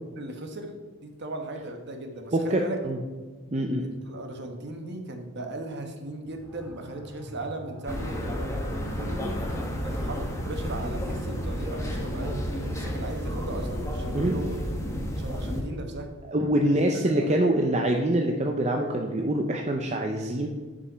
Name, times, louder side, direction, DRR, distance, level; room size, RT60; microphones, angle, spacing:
voice 1, 0.2-2.8 3.8-9.3 9.8-14.6 15.1-16.1 16.6-17.4, right 2 dB, 50° right, 4 dB, 1.2 m, -37 dB
voice 2, 2.3-3.0 3.5-3.9 14.1-14.4 16.3-20.5, right 1 dB, 30° right, 2 dB, 0.6 m, -25 dB
sound 1, 6.2-16.8, equal, 5° right, 2.1 m, -45 dB
sound 2, 7.9-15.6, equal, 15° left, 1.1 m, -31 dB
9.9 x 5.4 x 5.6 m, 1.4 s
head